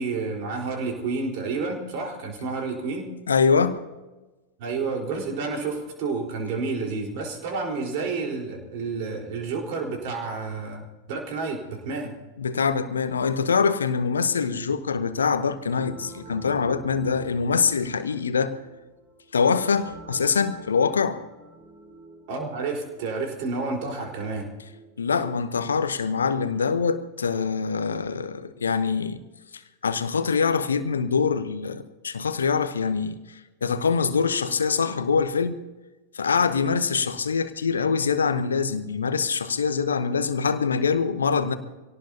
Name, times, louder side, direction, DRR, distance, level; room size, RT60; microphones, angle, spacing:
voice 1, 0.0-3.1 4.6-12.1 22.3-24.5, right 4 dB, 50° right, 4.4 m, -30 dB
voice 2, 3.3-3.8 12.4-18.6 19.3-21.2 25.0-29.2 29.5-33.2 33.6-35.6 36.1-41.6, left 5 dB, 70° left, 1.0 m, -24 dB
sound 1, 15.6-26.1, right 2 dB, 25° right, 5.2 m, -48 dB
25.5 x 18.0 x 2.9 m
figure-of-eight pair, 90°, 0 cm